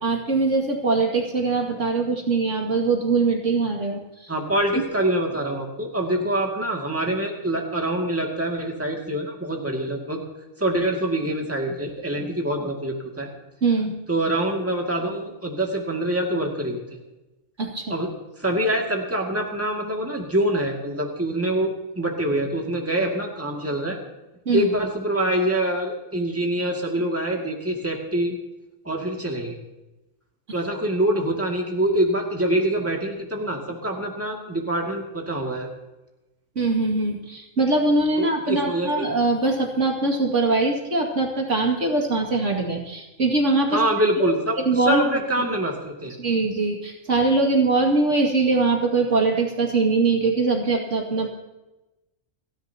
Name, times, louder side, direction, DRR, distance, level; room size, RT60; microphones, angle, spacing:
voice 1, 0.0-4.3 13.6-13.9 17.6-17.8 24.5-24.7 36.6-43.8 44.2-44.3 44.7-45.0 46.2-51.3, right 3 dB, 65° right, 1 dB, 2.6 m, -22 dB
voice 2, 4.3-10.2 10.6-13.3 14.1-16.8 17.9-18.1 18.4-21.7 22.0-24.0 24.5-28.4 28.8-29.6 30.5-35.7 38.2-39.1 43.7-46.1, right 1 dB, 10° right, 0 dB, 2.3 m, -25 dB
30.0 x 10.5 x 2.9 m, 1.0 s
omnidirectional pair, 1.4 m